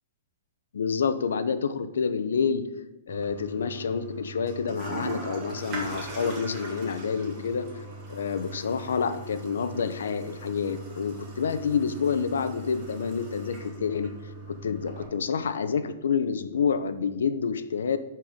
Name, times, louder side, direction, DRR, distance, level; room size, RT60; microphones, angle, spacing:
voice 1, 0.7-2.7 3.1-7.7 8.1-14.1 14.5-18.0, left 6 dB, 90° left, 11 dB, 0.8 m, -28 dB
Toilet flush, 3.1-15.1, right 2 dB, 20° right, 1.8 m, -40 dB
12.0 x 4.6 x 5.1 m, 0.99 s
hypercardioid pair, 180°, 0 cm